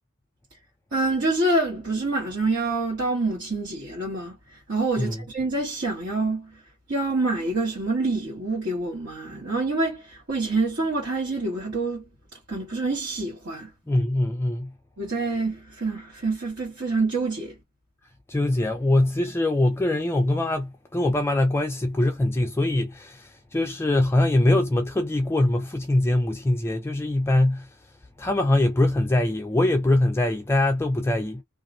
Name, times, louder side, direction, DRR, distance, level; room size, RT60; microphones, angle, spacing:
voice 1, 0.9-6.5 6.9-12.0 12.5-13.7 15.0-17.5, right 2 dB, 60° right, 1.6 m, -26 dB
voice 2, 13.9-14.7 18.3-31.4, left 1 dB, 10° left, 0.4 m, -23 dB
2.8 x 2.4 x 2.6 m
head